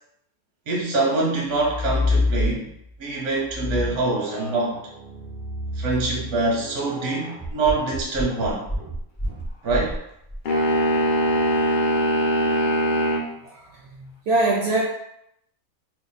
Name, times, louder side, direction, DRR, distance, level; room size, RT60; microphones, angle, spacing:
voice 1, 0.7-2.7 3.0-4.8 5.8-8.6 9.6-10.0, right 3 dB, 90° right, -3 dB, 1.3 m, -24 dB
sound 1, 1.5-2.9 3.4-10.4, left 2 dB, 5° left, 0.4 m, -28 dB
sound 2, 10.5-13.3, equal, 55° left, 0.5 m, -21 dB
voice 2, 13.4-14.8, right 2 dB, 65° right, -3 dB, 0.6 m, -24 dB
2.9 x 2.0 x 3.9 m, 0.79 s
omnidirectional pair, 1.5 m